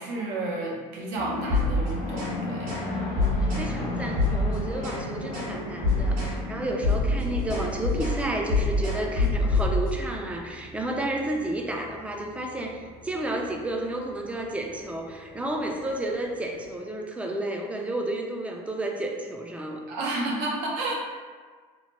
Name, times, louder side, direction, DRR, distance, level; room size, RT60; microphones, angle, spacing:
voice 1, 0.0-2.7 19.9-21.0, right 2 dB, 85° right, -2 dB, 0.7 m, -31 dB
sound 1, 1.2-16.8, left 2 dB, 50° left, 0.6 m, -37 dB
sound 2, 1.4-2.4 2.6-2.9 3.2-3.7 4.1-5.0 5.3-5.5 5.8-6.4 6.7-10.0, left 2 dB, 60° right, 1.3 m, -25 dB
voice 2, 3.1-19.8, right 1 dB, 10° right, 1 dB, 0.3 m, -31 dB
2.9 x 2.1 x 2.8 m, 1.5 s
cardioid pair, 115°, 15 cm